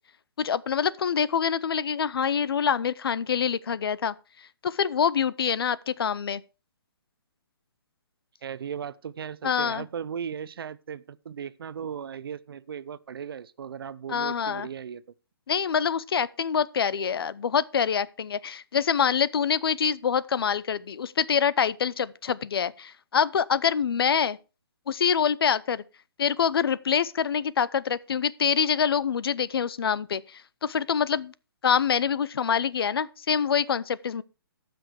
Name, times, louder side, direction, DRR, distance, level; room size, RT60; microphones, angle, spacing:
voice 1, 0.4-4.1 4.6-6.4 9.4-9.8 14.1-14.7 15.5-24.4 24.9-25.8 26.2-31.3 31.6-34.2, left 7 dB, 75° left, 0.6 m, -25 dB
voice 2, 8.4-15.0, right 7 dB, 70° right, 0.7 m, -37 dB
14.0 x 6.1 x 4.8 m
hypercardioid pair, 155°, 13 cm